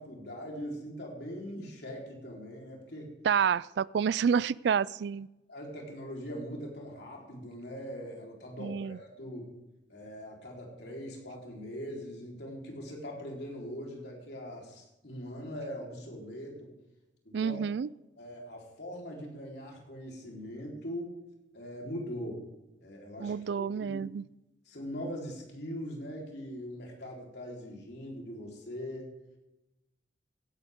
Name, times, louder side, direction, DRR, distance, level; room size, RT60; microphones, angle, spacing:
voice 1, 0.0-3.1 5.5-9.6 9.9-16.7 17.2-17.6 18.2-21.2 21.5-22.4 22.8-24.1 24.7-29.1, equal, 60° left, -1 dB, 3.9 m, -41 dB
voice 2, 3.2-5.3 8.6-9.0 17.3-17.9 23.2-24.2, right 7 dB, 65° right, 22 dB, 0.3 m, -29 dB
16.5 x 11.5 x 3.6 m, 0.97 s
head